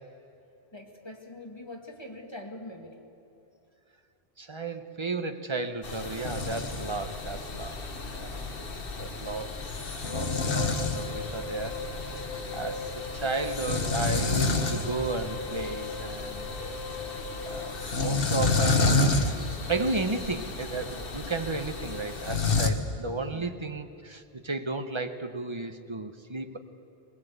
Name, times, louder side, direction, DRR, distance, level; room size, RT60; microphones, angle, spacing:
voice 1, 0.7-3.0 23.3-23.6, left 1 dB, 25° left, 2 dB, 2.1 m, -43 dB
voice 2, 4.4-7.8 8.1-8.5 9.0-9.6 10.0-11.8 12.5-16.8 17.4-19.0 19.7-26.6, right 3 dB, 25° right, 8 dB, 1.0 m, -34 dB
sound 1, 5.8-22.7, left 3 dB, 60° left, 1.6 m, -30 dB
Wind instrument woodwind instrument, 10.0-17.9, left 3 dB, 75° left, 2.1 m, -40 dB
21.5 x 20.5 x 8.1 m, 2.8 s
omnidirectional pair, 1.1 m